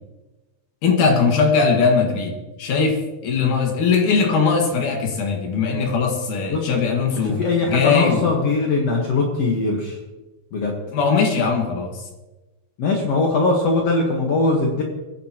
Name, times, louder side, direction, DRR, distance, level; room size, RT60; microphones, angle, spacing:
voice 1, 0.8-2.3 2.6-7.4 7.7-8.3 10.9-12.0, left 5 dB, 80° left, 2 dB, 3.3 m, -20 dB
voice 2, 7.2-10.0 10.5-10.7 12.8-14.8, left 3 dB, 55° left, 0 dB, 2.3 m, -21 dB
21.5 x 10.5 x 3.0 m, 1.1 s
omnidirectional pair, 3.5 m